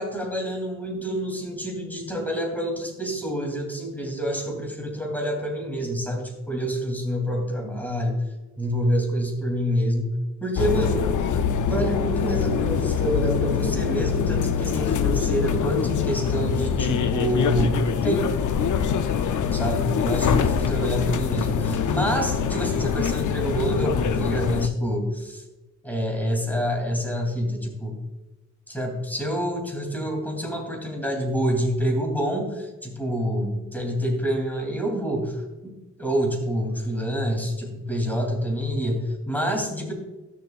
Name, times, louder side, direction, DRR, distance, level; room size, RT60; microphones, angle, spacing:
voice 1, 0.0-8.2 8.6-11.1 11.6-18.2 19.5-25.4 25.8-28.0 28.7-39.9, equal, 5° left, 1 dB, 3.1 m, -27 dB
sound 1, 10.6-24.7, left 7 dB, 85° left, 0.6 m, -24 dB
13.5 x 7.0 x 2.5 m, 1.1 s
cardioid pair, 90°, 29 cm